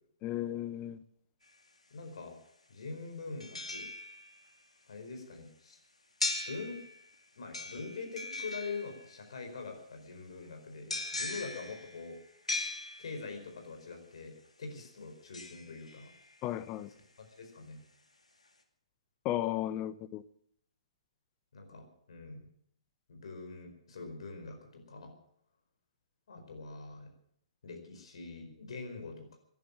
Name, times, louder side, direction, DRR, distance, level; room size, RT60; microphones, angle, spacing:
voice 1, 0.2-1.0 16.4-16.9 19.2-20.2, left 13 dB, 25° left, 14 dB, 0.9 m, -34 dB
sound 1, 1.4-1.5 3.4-4.6 6.2-7.1 7.5-9.3 10.9-13.4 15.3-16.5 17.0-17.1, left 2 dB, 80° left, 2.3 m, -39 dB
voice 2, 1.9-2.3 2.7-3.9 4.9-5.8 6.5-6.8 7.4-12.2 13.0-16.1 17.2-17.8 21.5-22.4 23.1-25.1 26.3-27.1 27.6-29.4, left 4 dB, 60° left, 5 dB, 4.7 m, -44 dB
18.5 x 11.0 x 7.2 m, 0.69 s
figure-of-eight pair, 125°, 3 cm